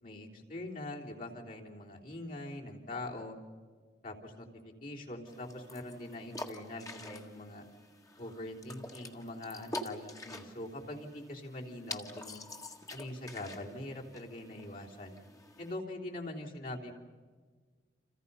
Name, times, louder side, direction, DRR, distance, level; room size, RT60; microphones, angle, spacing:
voice 1, 0.0-3.4 4.0-7.7 8.2-12.4 12.9-15.2 15.6-16.9, left 1 dB, 50° left, -1 dB, 3.6 m, -43 dB
sound 1, 5.3-15.8, left 2 dB, 20° left, 1.8 m, -47 dB
30.0 x 28.0 x 5.6 m, 1.5 s
head